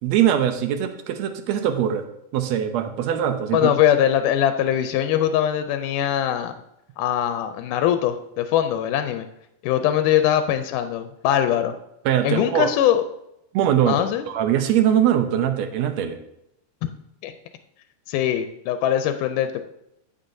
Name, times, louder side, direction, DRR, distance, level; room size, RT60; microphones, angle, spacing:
voice 1, 0.0-2.1 2.3-3.7 12.0-12.7 13.5-16.2, right 10 dB, 75° right, 7 dB, 1.7 m, -22 dB
voice 2, 3.5-6.5 7.0-9.3 9.6-11.7 12.2-13.0 13.9-14.3 17.2-17.3 18.1-19.6, left 10 dB, 85° left, 8 dB, 2.1 m, -21 dB
14.5 x 5.7 x 2.6 m, 0.82 s
omnidirectional pair, 3.6 m